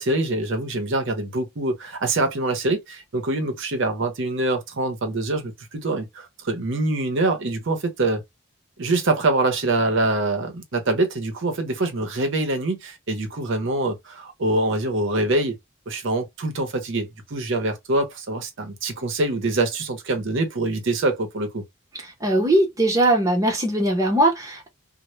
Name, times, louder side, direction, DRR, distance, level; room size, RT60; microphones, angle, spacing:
voice 1, 0.0-8.2 8.8-15.6 15.9-21.6, right 2 dB, 55° right, 0.7 m, -24 dB
voice 2, 22.2-24.7, right 1 dB, 15° right, 0.7 m, -20 dB
2.1 x 2.1 x 2.9 m
head